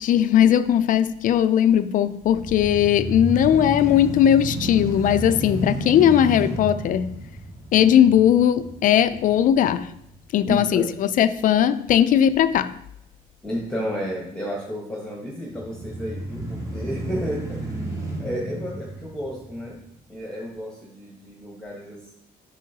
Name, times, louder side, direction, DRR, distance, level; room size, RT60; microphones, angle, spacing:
voice 1, 0.0-7.2 7.7-9.9 10.3-12.7, left 10 dB, 50° left, 0.4 m, -18 dB
sound 1, 2.2-10.4 10.9-11.0 15.5-20.0, right 1 dB, 20° right, 2.0 m, -32 dB
voice 2, 10.4-10.9 13.4-17.8 18.2-19.8 20.1-22.1, equal, 5° left, 1.1 m, -32 dB
7.3 x 6.2 x 2.8 m
cardioid pair, 110°, 17 cm